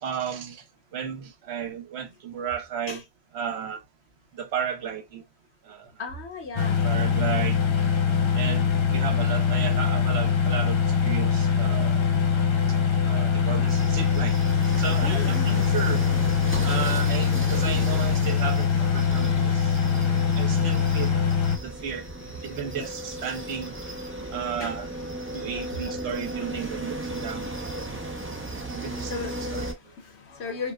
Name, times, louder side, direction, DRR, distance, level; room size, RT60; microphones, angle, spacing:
voice 1, 0.0-0.6 0.9-3.0 3.3-3.8 4.3-5.2 5.7-5.9 6.6-7.6 8.3-12.0 13.1-14.4 14.8-16.0 16.6-19.8 20.4-21.1 21.6-22.1 22.4-23.8 24.3-24.9 25.3-27.5 28.7-29.1 29.5-29.7, right 7 dB, 75° right, 0.9 m, -33 dB
voice 2, 6.0-6.8 15.0-15.6 21.8-21.9 22.3-22.9 24.0-24.8 25.2-26.0 28.8-30.7, left 4 dB, 85° left, 1.2 m, -38 dB
sound 1, 6.6-21.6, left 6 dB, 50° left, 0.3 m, -23 dB
sound 2, 13.7-29.7, right 1 dB, 15° right, 0.5 m, -36 dB
4.6 x 2.1 x 2.2 m
omnidirectional pair, 1.1 m